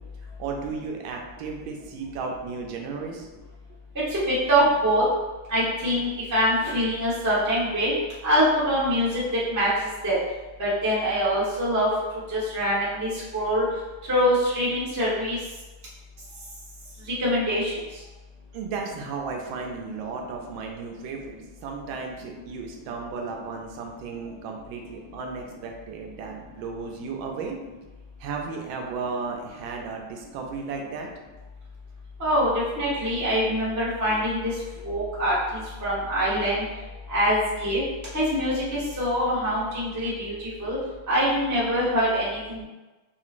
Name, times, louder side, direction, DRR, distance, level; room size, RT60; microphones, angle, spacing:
voice 1, 0.4-3.3 18.5-27.6 28.2-31.1, right 4 dB, 85° right, 1 dB, 1.4 m, -34 dB
voice 2, 4.1-5.0 5.5-7.9 8.2-9.2 9.5-9.7 10.0-10.1 10.6-11.9 12.3-13.6 14.1-15.4 17.2-17.7 32.2-34.5 34.8-36.6 37.1-37.8 38.1-40.8 41.1-42.6, equal, 20° right, -8 dB, 0.5 m, -24 dB
3.6 x 2.9 x 2.5 m, 1.2 s
omnidirectional pair, 2.2 m